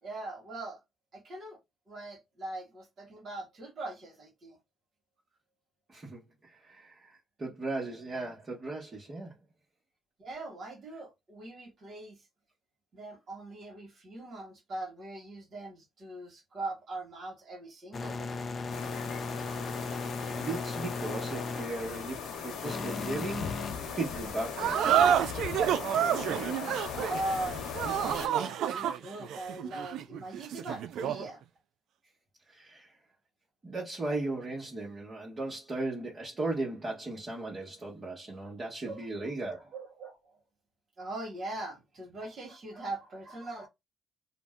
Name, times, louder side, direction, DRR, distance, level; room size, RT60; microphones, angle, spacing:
voice 1, 0.0-0.8 1.1-1.6 1.9-4.6 10.2-12.2 12.9-18.4 26.9-31.4 38.8-40.2 41.0-43.7, right 2 dB, 55° right, 1.3 m, -41 dB
voice 2, 5.9-6.2 6.5-9.4 19.9-23.6 23.9-25.1 32.5-32.9 33.6-39.6, right 2 dB, 35° right, 1.2 m, -37 dB
sound 1, 17.9-23.7, left 4 dB, 40° left, 0.4 m, -37 dB
sound 2, 18.7-28.3, left 6 dB, 90° left, 0.8 m, -39 dB
sound 3, 24.6-31.3, right 9 dB, 80° right, 0.3 m, -29 dB
2.6 x 2.1 x 3.5 m
cardioid pair, 90°, 0 cm